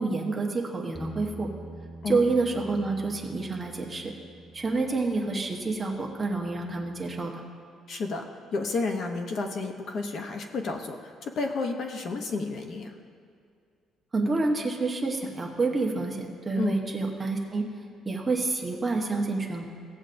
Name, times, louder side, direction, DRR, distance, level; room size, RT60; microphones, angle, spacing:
voice 1, 0.0-1.5 2.1-4.1 4.5-7.3 14.1-17.6 18.0-19.6, right 3 dB, 15° right, -1 dB, 1.0 m, -28 dB
Bass guitar, 0.9-7.2, right 2 dB, ahead, 0.4 m, -46 dB
voice 2, 7.9-8.3 8.5-13.0 16.5-16.8, left 3 dB, 45° left, 4 dB, 0.7 m, -31 dB
17.5 x 7.9 x 2.6 m, 2.2 s
cardioid pair, 165°, 0 cm